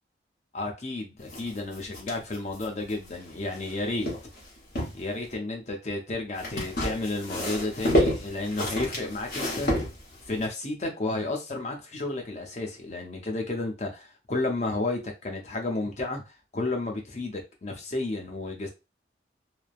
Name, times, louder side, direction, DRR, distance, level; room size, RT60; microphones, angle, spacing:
voice 1, 0.5-4.1 4.9-9.7 10.3-18.7, left 2 dB, 40° left, 0.6 m, -32 dB
sound 1, 1.3-3.7 4.0-5.0 6.4-10.5, equal, 55° left, 1.1 m, -29 dB
3.1 x 2.0 x 2.4 m
head